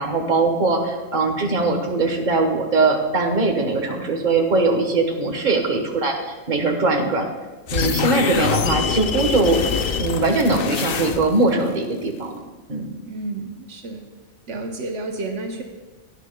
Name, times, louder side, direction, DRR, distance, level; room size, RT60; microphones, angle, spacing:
voice 1, 0.0-7.3 7.7-9.6 10.0-12.4 12.7-13.0, right 3 dB, 45° right, 2 dB, 1.4 m, -21 dB
sound 1, 7.7-11.5, left 7 dB, 60° left, 0.7 m, -24 dB
voice 2, 13.1-14.0 14.5-15.6, right 2 dB, 80° right, 3 dB, 1.2 m, -30 dB
17.0 x 10.0 x 2.3 m, 1.2 s
omnidirectional pair, 1.2 m